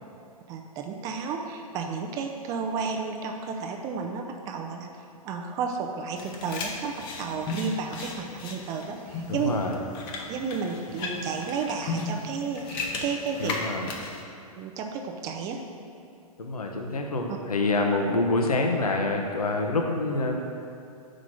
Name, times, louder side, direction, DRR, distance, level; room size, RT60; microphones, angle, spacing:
voice 1, 0.5-4.9 5.2-9.5 10.3-13.6 14.6-15.6, right 5 dB, 20° right, 3 dB, 0.4 m, -32 dB
sound 1, 6.2-14.2, left 3 dB, 25° left, 0.7 m, -36 dB
voice 2, 9.3-9.8 13.4-13.9 16.4-20.4, left 2 dB, 70° left, 2 dB, 0.8 m, -26 dB
5.9 x 5.0 x 5.7 m, 2.5 s
figure-of-eight pair, 115°, 20 cm